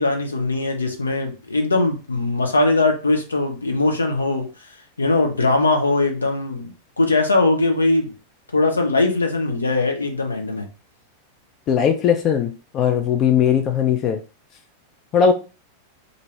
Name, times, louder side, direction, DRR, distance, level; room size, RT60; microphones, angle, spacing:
voice 1, 0.0-4.5 5.0-8.1 8.5-10.7, left 2 dB, 75° left, 4 dB, 0.6 m, -20 dB
voice 2, 11.7-14.2 15.1-15.3, left 8 dB, 35° left, 6 dB, 0.4 m, -19 dB
2.6 x 2.6 x 3.1 m, 0.33 s
figure-of-eight pair, 90°, 0 cm